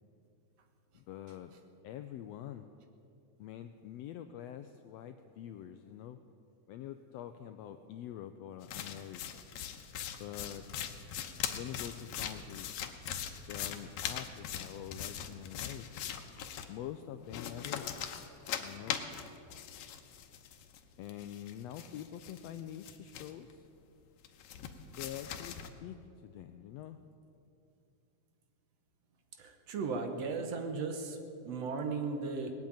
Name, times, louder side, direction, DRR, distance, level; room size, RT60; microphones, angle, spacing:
voice 1, 0.9-1.5 1.8-2.7 3.4-6.2 6.7-9.4 10.1-10.7 11.5-12.8 13.4-16.1 16.7-18.3 18.6-19.0 21.0-23.7 24.9-27.0, left 10 dB, 90° left, 9 dB, 1.4 m, -45 dB
sound 1, 8.6-16.7 17.2-20.8 21.1-23.5 24.2-25.7, left 9 dB, 75° left, 2.1 m, -41 dB
voice 2, 29.4-31.2 31.4-32.5, right 4 dB, 65° right, 5 dB, 2.0 m, -36 dB
19.5 x 8.4 x 8.8 m, 2.6 s
omnidirectional pair, 3.5 m